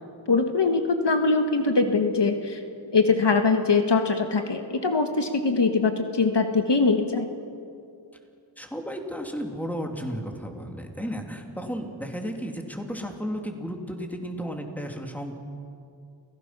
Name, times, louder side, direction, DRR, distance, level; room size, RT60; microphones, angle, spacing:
voice 1, 0.3-2.6 2.9-7.3, left 4 dB, 65° left, 5 dB, 1.5 m, -22 dB
voice 2, 8.6-15.4, equal, 5° left, 2 dB, 2.9 m, -33 dB
29.5 x 17.0 x 6.0 m, 2.5 s
wide cardioid pair, 55°, 46 cm